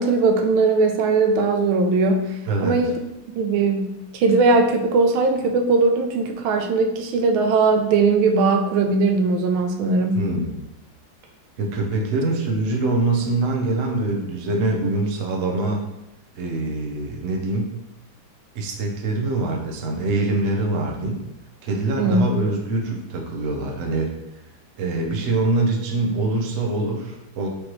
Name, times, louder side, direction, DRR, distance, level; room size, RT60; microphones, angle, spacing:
voice 1, 0.0-2.3 2.6-3.0 3.3-10.3 22.0-22.2, right 3 dB, 80° right, 4 dB, 1.4 m, -19 dB
voice 2, 10.1-10.5 11.6-15.8 16.4-17.7 18.5-21.2 21.6-24.1 24.8-27.5, right 2 dB, 60° right, 1 dB, 0.8 m, -24 dB
5.1 x 3.2 x 3.0 m, 0.90 s
omnidirectional pair, 2.2 m